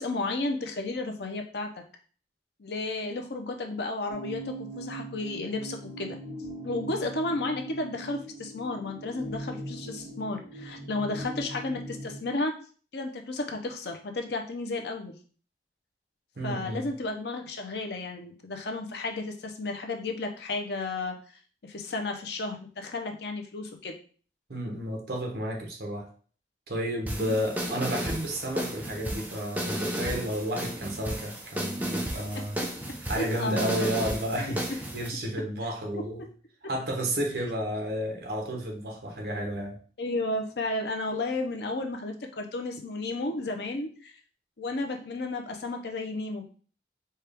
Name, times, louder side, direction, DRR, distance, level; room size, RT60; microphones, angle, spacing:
voice 1, 0.0-1.7 2.6-6.2 6.6-12.5 12.9-15.2 16.4-21.1 21.6-23.9 27.2-27.4 33.1-33.9 34.4-34.5 35.9-36.0 40.0-44.1 44.6-46.5, left 2 dB, 70° left, 0.6 m, -33 dB
sound 1, 4.1-12.3, right 1 dB, 40° right, 2.0 m, -40 dB
voice 2, 16.4-16.9 24.5-26.1 26.7-32.6 33.0-36.2 36.7-39.8, equal, 60° right, 1.0 m, -32 dB
sound 2, 27.1-35.1, equal, 10° right, 0.5 m, -34 dB
4.4 x 2.3 x 3.4 m
head